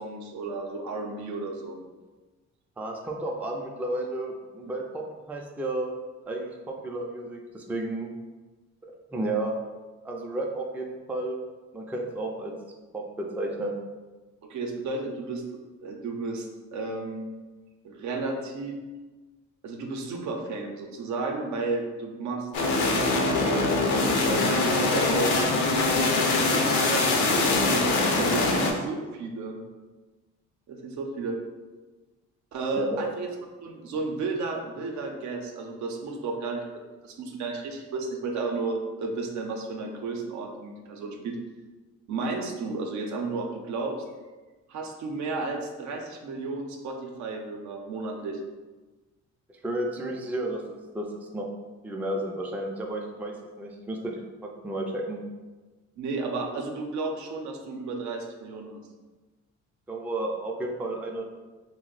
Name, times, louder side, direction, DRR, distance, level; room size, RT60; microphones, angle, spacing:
voice 1, 0.0-1.8 14.4-15.4 15.8-16.5 16.7-17.3 17.8-18.7 19.6-22.5 23.0-25.4 26.2-27.8 28.2-29.6 30.7-31.4 32.5-33.3 33.6-41.4 42.1-43.9 44.7-48.4 56.0-58.8, right 3 dB, 70° right, 3 dB, 0.5 m, -33 dB
voice 2, 2.8-5.9 6.3-8.1 9.1-9.5 10.0-11.4 11.7-12.5 12.9-13.8 32.8-33.1 49.6-50.6 50.9-51.1 51.3-51.5 51.8-55.2 59.9-61.2, right 1 dB, 5° right, 0 dB, 0.3 m, -32 dB
sound 1, 22.5-28.7, left 3 dB, 75° left, 0.6 m, -23 dB
2.6 x 2.0 x 3.8 m, 1.2 s
cardioid pair, 90°, 30 cm